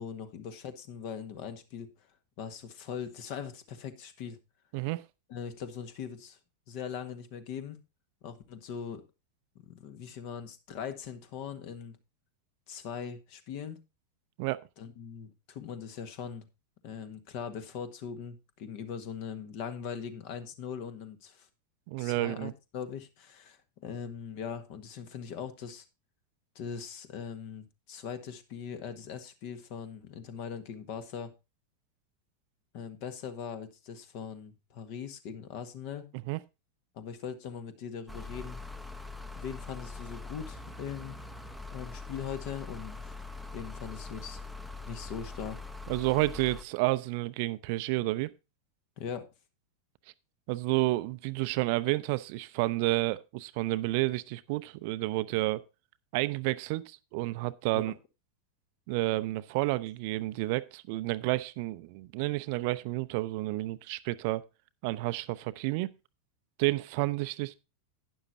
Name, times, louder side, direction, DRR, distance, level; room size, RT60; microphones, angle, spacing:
voice 1, 0.0-2.1 2.4-4.4 5.3-6.4 6.7-7.8 8.2-9.0 9.6-12.0 12.7-13.8 14.8-16.5 16.8-21.5 22.0-25.8 26.5-31.3 32.7-36.1 36.9-38.6 39.3-41.2 41.7-43.0 43.5-44.4 44.9-45.6 49.0-49.3 57.7-57.9, left 7 dB, 45° left, 1.5 m, -40 dB
voice 2, 21.9-22.5 36.3-36.4 45.9-48.3 50.5-55.6 56.1-57.9 58.9-64.4 64.8-65.9 66.6-67.5, right 20 dB, 45° right, 0.6 m, -30 dB
sound 1, 38.1-46.6, left 3 dB, ahead, 0.8 m, -43 dB
12.0 x 9.8 x 2.7 m
figure-of-eight pair, 90°, 0 cm